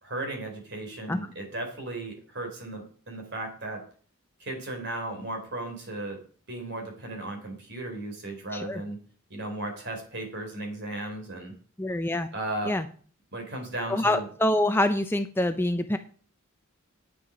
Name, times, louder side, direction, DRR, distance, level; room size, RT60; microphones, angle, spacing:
voice 1, 0.0-3.8 4.4-6.2 6.5-9.0 9.3-11.5 12.3-12.7 13.3-14.2, right 2 dB, 50° right, 4 dB, 4.0 m, -35 dB
voice 2, 11.8-12.3 12.6-12.9 13.9-16.0, left 1 dB, 10° left, 8 dB, 0.5 m, -25 dB
10.5 x 9.1 x 5.1 m, 0.43 s
head